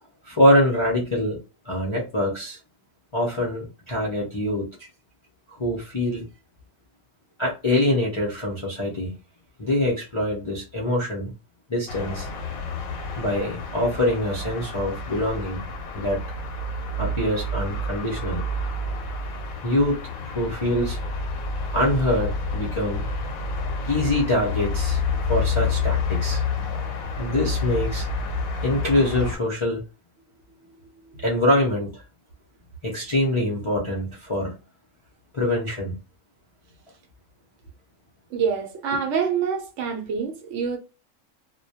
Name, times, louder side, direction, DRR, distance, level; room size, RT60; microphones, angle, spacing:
voice 1, 0.2-1.4 1.7-2.6 3.1-4.9 5.5-6.3 7.4-9.1 9.6-11.3 11.7-12.3 13.2-15.6 15.9-16.2 17.0-18.4 19.6-20.0 20.2-21.0 21.7-23.1 23.9-25.0 25.3-26.4 27.2-28.1 28.6-29.8 31.2-32.0 32.8-34.6 35.3-36.0, left 1 dB, 45° left, 0.4 m, -24 dB
sound 1, 11.9-29.4, left 3 dB, 90° left, 1.0 m, -29 dB
voice 2, 30.3-31.3 38.3-40.8, right 6 dB, 70° right, 0.9 m, -27 dB
2.2 x 2.1 x 2.7 m
omnidirectional pair, 1.4 m